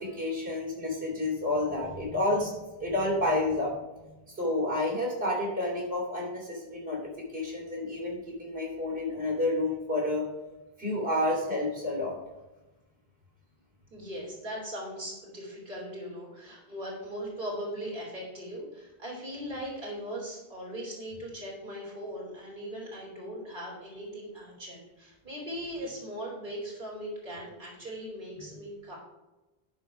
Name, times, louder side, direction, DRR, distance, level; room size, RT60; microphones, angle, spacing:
voice 1, 0.0-4.1 4.3-7.0 7.3-10.3 10.8-12.2 28.4-28.5, left 1 dB, 80° right, -2 dB, 3.8 m, -30 dB
voice 2, 13.9-29.0, equal, 55° right, -4 dB, 3.6 m, -39 dB
11.5 x 4.6 x 5.0 m, 1.1 s
omnidirectional pair, 1.0 m